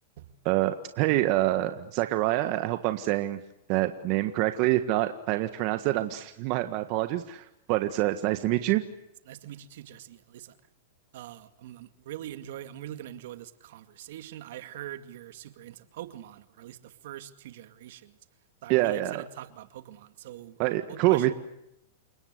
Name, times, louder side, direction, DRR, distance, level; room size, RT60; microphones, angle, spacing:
voice 1, 0.4-3.4 3.7-8.8 18.7-19.2 20.6-21.3, right 16 dB, 50° right, 9 dB, 1.7 m, -26 dB
voice 2, 9.3-10.6 11.1-18.1 18.6-20.6 20.9-21.3, right 12 dB, 65° right, 11 dB, 2.3 m, -43 dB
29.5 x 19.0 x 8.3 m, 0.80 s
hypercardioid pair, 130°, 0 cm